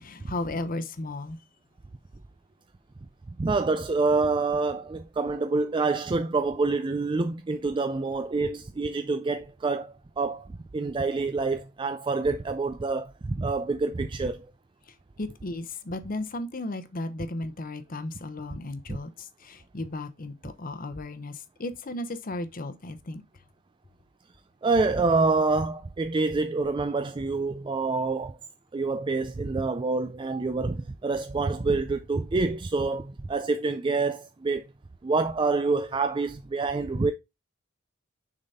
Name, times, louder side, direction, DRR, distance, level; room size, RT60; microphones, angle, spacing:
voice 1, 0.0-1.4 14.9-23.2, left 2 dB, 45° left, 0.8 m, -35 dB
voice 2, 3.4-14.5 18.9-19.0 24.6-28.4 28.7-34.6 35.0-37.1, right 3 dB, 25° right, 0.4 m, -27 dB
6.5 x 4.0 x 4.1 m
head